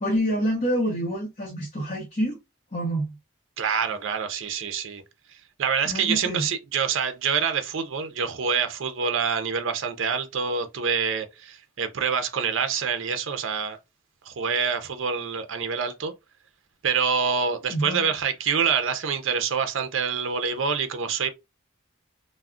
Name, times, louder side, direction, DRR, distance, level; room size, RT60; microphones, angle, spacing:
voice 1, 0.0-2.4 2.7-3.1 5.9-6.4 17.7-18.1, equal, 35° left, 0.7 m, -27 dB
voice 2, 3.6-5.0 5.6-13.8 14.3-16.1 16.8-21.3, right 6 dB, 75° right, 0.5 m, -26 dB
2.3 x 2.0 x 3.5 m
head